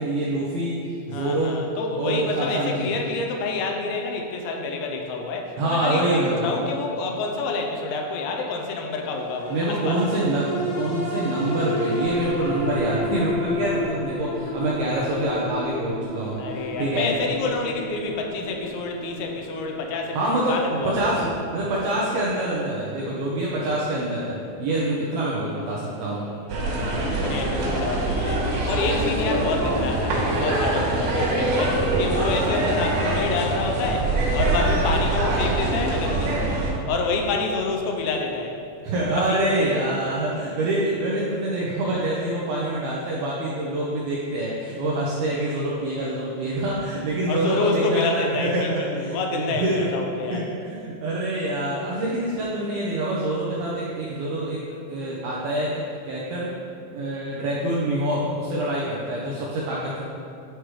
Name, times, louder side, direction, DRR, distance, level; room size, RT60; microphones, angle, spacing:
voice 1, 0.0-1.6 2.0-2.9 5.6-6.5 9.5-17.2 20.1-26.2 38.8-49.9 50.3-54.6 54.9-56.5 56.9-60.0, right 1 dB, 80° right, -5 dB, 2.2 m, -26 dB
voice 2, 1.1-10.0 16.4-21.1 23.6-23.8 25.6-36.4 36.9-38.5 39.2-39.4 47.3-50.5, left 3 dB, 85° left, 2 dB, 2.9 m, -28 dB
sound 1, 9.1-23.8 24.2-24.3, left 1 dB, 65° left, 3.0 m, -32 dB
sound 2, 26.5-36.7, right 1 dB, 65° right, 3.1 m, -24 dB
10.0 x 4.8 x 3.1 m, 2.6 s
omnidirectional pair, 5.3 m